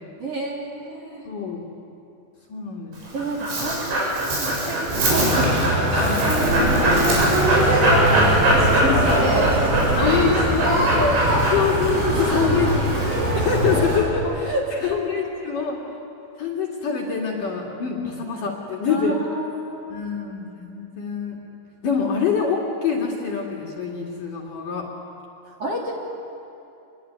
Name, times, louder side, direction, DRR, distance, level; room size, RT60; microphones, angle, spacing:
voice 1, 0.2-1.3 3.1-6.0 8.7-10.3 10.6-10.9 12.2-12.8 14.2-15.2 18.9-20.0 25.5-25.9, right 2 dB, 35° right, -2 dB, 4.0 m, -31 dB
voice 2, 1.3-1.6 2.5-2.9 5.9-6.2 6.5-9.0 9.9-13.0 13.3-14.5 14.8-15.8 16.4-19.2 19.9-21.4 21.8-24.9, left 6 dB, 50° left, -2 dB, 3.5 m, -25 dB
Dog, 2.9-13.7, right 1 dB, 70° right, 9.4 m, -23 dB
Conversation, 4.9-14.0, right 1 dB, 90° right, 10.0 m, -21 dB
27.5 x 21.5 x 9.5 m, 2.8 s
omnidirectional pair, 5.6 m